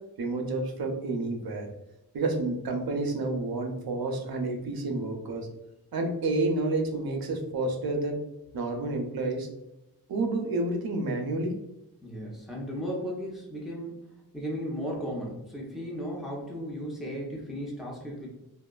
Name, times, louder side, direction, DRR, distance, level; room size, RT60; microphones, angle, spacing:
voice 1, 0.2-1.7 2.1-5.5 5.9-8.2 8.5-9.5 10.1-11.6, right 2 dB, 65° right, 3 dB, 0.7 m, -29 dB
voice 2, 12.0-14.0 14.3-18.3, equal, ahead, -3 dB, 0.9 m, -35 dB
2.8 x 2.3 x 2.3 m, 0.90 s
cardioid pair, 65°, 39 cm